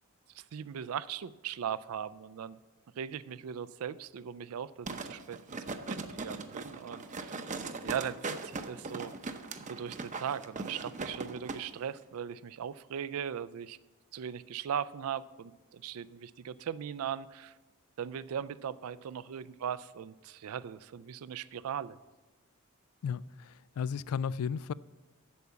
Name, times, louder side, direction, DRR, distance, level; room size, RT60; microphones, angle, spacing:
voice 1, 0.3-2.6 3.0-5.4 5.9-7.4 7.8-9.4 9.7-13.8 14.1-17.5 18.0-22.0, right 8 dB, 80° right, 0.4 m, -39 dB
sound 1, 4.9-11.6 11.9-12.0, right 3 dB, 35° right, 0.6 m, -39 dB
voice 2, 23.0-24.7, left 6 dB, 85° left, 0.3 m, -34 dB
8.4 x 6.9 x 8.3 m
head